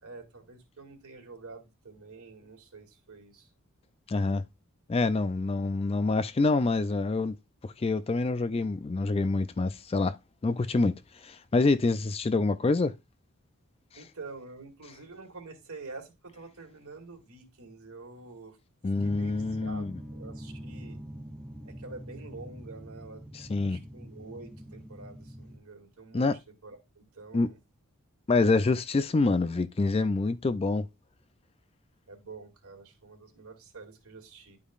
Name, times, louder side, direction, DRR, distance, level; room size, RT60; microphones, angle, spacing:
voice 1, 0.0-3.5 13.9-18.6 19.0-19.9 20.1-21.0 21.6-23.2 23.6-26.3 26.6-27.6 32.1-34.6, right 3 dB, 75° right, 2.4 m, -47 dB
voice 2, 4.1-4.5 4.9-7.4 7.6-10.2 10.4-12.9 18.8-20.0 23.3-23.8 26.1-26.4 27.3-27.5 28.3-30.9, left 3 dB, 25° left, 0.4 m, -26 dB
sound 1, 18.9-25.6, equal, 5° left, 2.6 m, -44 dB
11.5 x 5.1 x 2.4 m
head